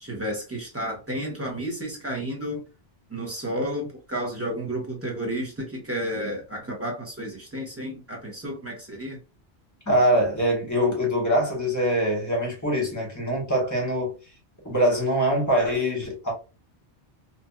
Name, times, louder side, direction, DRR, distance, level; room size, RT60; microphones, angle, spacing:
voice 1, 0.0-2.6 3.1-9.2, equal, 15° right, 1.0 m, -31 dB
voice 2, 9.9-14.1 14.6-16.3, equal, 15° left, 1.4 m, -23 dB
2.8 x 2.5 x 2.3 m
omnidirectional pair, 1.2 m